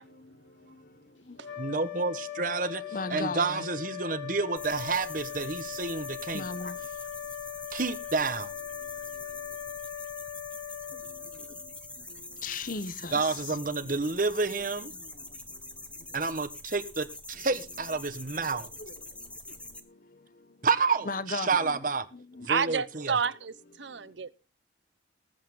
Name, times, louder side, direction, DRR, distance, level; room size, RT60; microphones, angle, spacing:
voice 1, 0.0-1.8 2.9-3.7 5.4-6.0 6.3-6.9 8.8-9.6 10.9-13.9 14.9-16.2 17.3-17.4 18.0-20.7 21.0-21.8 22.1-22.5 23.8-24.3, left 3 dB, 45° left, 0.9 m, -41 dB
sound 1, 1.4-12.0, left 11 dB, 85° left, 3.2 m, -40 dB
voice 2, 1.6-2.8 3.1-6.4 7.7-8.5 13.1-14.9 16.1-18.7 20.6-22.1 22.5-23.2, right 4 dB, 45° right, 1.2 m, -29 dB
sound 2, 4.6-19.8, left 2 dB, 5° left, 1.3 m, -45 dB
voice 3, 22.5-24.3, right 6 dB, 75° right, 0.7 m, -30 dB
20.0 x 8.5 x 3.7 m
head